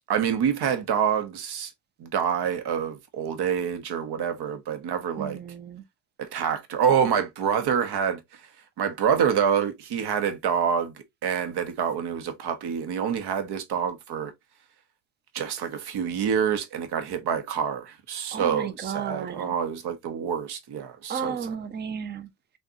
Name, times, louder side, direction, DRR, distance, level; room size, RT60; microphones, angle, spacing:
voice 1, 0.1-1.7 2.0-5.4 6.2-8.2 8.8-10.9 11.2-14.3 15.3-21.3, right 7 dB, 60° right, 1.0 m, -26 dB
voice 2, 5.2-5.8 18.3-19.5 21.1-22.3, right 7 dB, 25° right, 0.5 m, -33 dB
3.7 x 2.5 x 2.6 m
cardioid pair, 90°, 45 cm